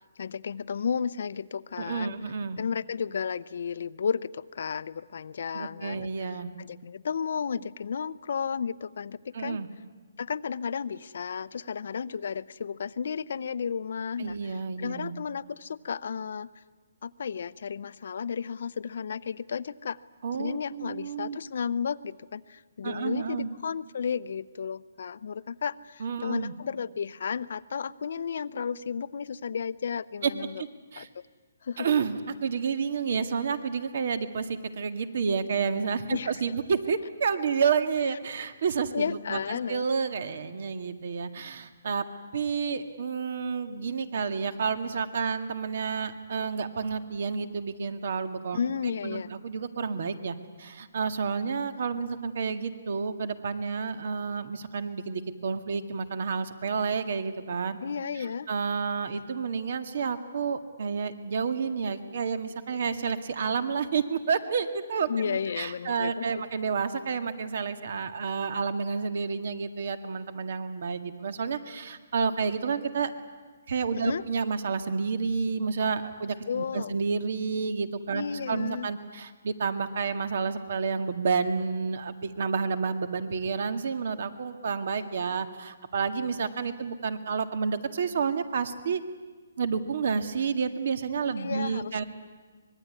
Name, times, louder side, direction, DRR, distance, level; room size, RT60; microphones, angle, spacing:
voice 1, 0.2-2.2 2.6-9.6 10.2-16.5 17.0-20.0 20.4-30.6 31.0-31.2 31.6-31.9 36.1-36.4 38.9-39.8 48.5-49.3 57.8-58.5 65.1-66.5 73.9-74.2 76.5-76.9 78.1-78.9 91.4-92.0, left 6 dB, 60° left, 16 dB, 0.7 m, -33 dB
voice 2, 1.8-2.6 5.5-6.5 9.3-9.7 14.2-15.2 20.2-21.4 22.8-23.5 26.0-26.5 30.2-30.3 30.6-30.7 30.9-31.1 31.8-42.0 42.3-48.6 49.0-57.8 58.5-73.1 73.7-89.0 89.6-92.0, right 5 dB, 55° right, 10 dB, 1.9 m, -30 dB
25.0 x 21.5 x 9.8 m, 1.4 s
hypercardioid pair, 165°, 0 cm